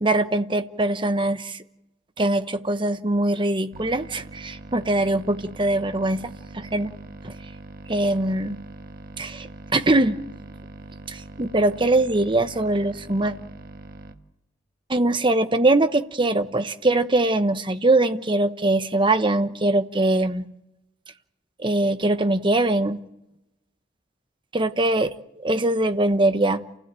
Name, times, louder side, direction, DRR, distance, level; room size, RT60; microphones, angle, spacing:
voice 1, 0.0-1.6 2.2-6.9 7.2-7.3 7.9-8.6 9.2-10.2 11.1-13.3 14.9-20.5 21.6-23.0 24.5-25.1 25.4-26.6, right 2 dB, 25° right, 11 dB, 1.1 m, -22 dB
sound 1, 3.7-14.1, right 2 dB, 55° right, 1.6 m, -42 dB
29.0 x 16.0 x 9.0 m, 0.92 s
head